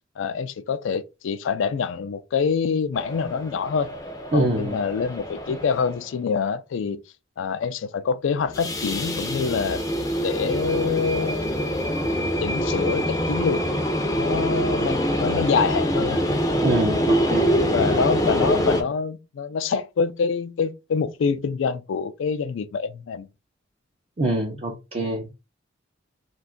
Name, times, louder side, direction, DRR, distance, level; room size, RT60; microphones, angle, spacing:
voice 1, 0.2-3.9 4.3-7.0 7.4-9.8 10.2-11.5 12.4-13.6 14.2-16.2 17.7-23.3, left 5 dB, 75° left, 0.3 m, -26 dB
sound 1, 2.9-6.1 8.4-18.8, equal, 20° left, 0.5 m, -25 dB
voice 2, 4.3-4.8 16.6-17.8 24.2-25.3, right 1 dB, 30° right, 0.5 m, -25 dB
2.5 x 2.3 x 3.7 m
head